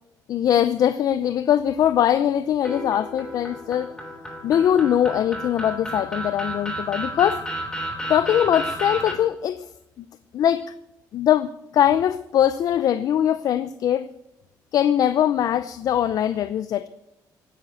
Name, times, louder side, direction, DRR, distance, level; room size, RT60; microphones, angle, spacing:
voice 1, 0.3-3.9 4.4-7.4 8.1-9.7 10.0-10.1 10.3-10.7 11.1-14.1 14.7-16.9, left 10 dB, 55° left, 14 dB, 0.6 m, -21 dB
sound 1, 2.6-9.1, right 1 dB, 10° left, 3.2 m, -32 dB
16.5 x 10.0 x 8.2 m, 0.84 s
cardioid pair, 140°, 8 cm